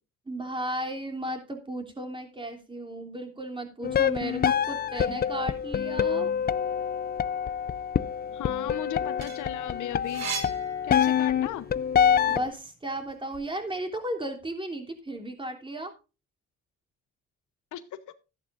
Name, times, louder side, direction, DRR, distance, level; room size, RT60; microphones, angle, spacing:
voice 1, 0.3-6.3 12.3-15.9, right 1 dB, 15° right, 4 dB, 3.0 m, -35 dB
sound 1, 3.8-12.5, left 8 dB, 30° left, 0.5 m, -26 dB
voice 2, 8.3-10.2 10.8-11.6 17.7-17.8 18.1-18.2, left 12 dB, 80° left, 10 dB, 1.0 m, -36 dB
sound 2, 8.9-11.6 12.0-13.5, right 6 dB, 60° right, 1.9 m, -39 dB
13.0 x 11.0 x 2.5 m, 0.30 s
cardioid pair, 90°, 30 cm